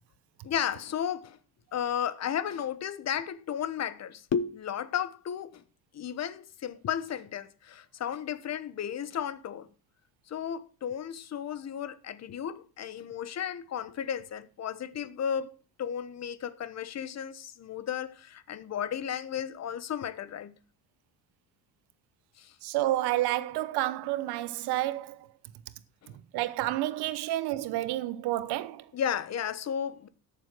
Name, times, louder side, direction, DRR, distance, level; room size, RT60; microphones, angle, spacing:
voice 1, 0.4-1.4 1.7-5.6 5.9-9.7 10.3-15.5 15.8-20.6 22.4-22.5 26.0-26.2 28.9-30.1, left 8 dB, 45° left, 1.1 m, -34 dB
voice 2, 22.6-25.3 26.3-28.9, right 15 dB, 90° right, 1.0 m, -30 dB
13.5 x 7.2 x 6.1 m
cardioid pair, 130°, 38 cm